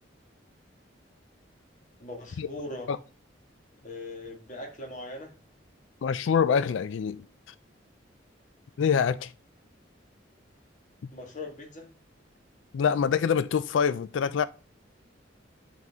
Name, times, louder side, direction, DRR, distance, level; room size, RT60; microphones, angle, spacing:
voice 1, 2.0-2.9 3.8-5.3 11.1-11.9, left 2 dB, 40° left, 1.7 m, -40 dB
voice 2, 6.0-7.2 8.8-9.3 11.0-11.1 12.7-14.5, left 7 dB, 85° left, 0.4 m, -25 dB
9.3 x 4.0 x 3.5 m
head